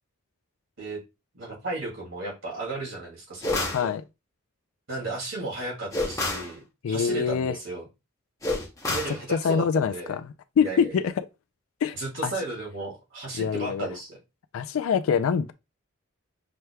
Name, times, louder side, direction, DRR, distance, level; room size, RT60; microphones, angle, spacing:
voice 1, 1.3-3.9 4.9-7.9 8.9-10.1 10.6-11.0 11.9-14.2, right 2 dB, 65° right, 2.3 m, -34 dB
sound 1, 3.4-3.9 5.9-6.5 8.4-9.2, left 2 dB, 15° left, 0.8 m, -28 dB
voice 2, 6.8-7.5 8.9-9.0 9.3-10.2 10.6-11.1 11.8-12.0 12.2-12.3 13.4-13.9 14.5-15.5, left 7 dB, 80° left, 0.3 m, -24 dB
5.8 x 3.3 x 2.2 m
head